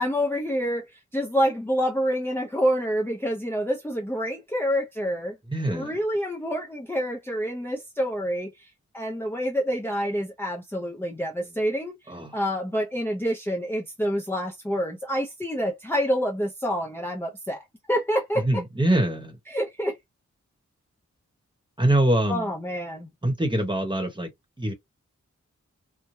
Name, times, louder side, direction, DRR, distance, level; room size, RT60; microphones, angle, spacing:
voice 1, 0.0-5.4 5.7-18.6 19.5-20.0 22.3-23.1, equal, 5° left, 0.6 m, -27 dB
voice 2, 5.5-5.9 12.1-12.3 18.4-19.4 21.8-22.5 23.2-24.3 24.6-24.7, right 1 dB, 15° right, 1.0 m, -24 dB
3.2 x 2.2 x 2.6 m
wide cardioid pair, 95°, 30 cm